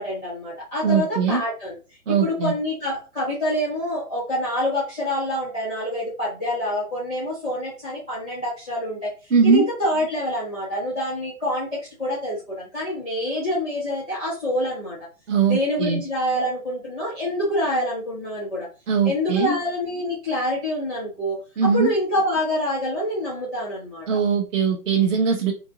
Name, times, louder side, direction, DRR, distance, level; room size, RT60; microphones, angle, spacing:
voice 1, 0.0-1.8 2.1-15.0 15.4-18.7 19.0-24.1, left 1 dB, 5° right, -8 dB, 0.5 m, -26 dB
voice 2, 0.8-1.4 2.1-2.5 9.3-9.7 15.3-16.0 18.9-19.5 21.6-21.9 24.1-25.5, right 6 dB, 55° right, 0 dB, 0.9 m, -20 dB
3.0 x 2.7 x 3.6 m, 0.32 s
hypercardioid pair, 150°, 44 cm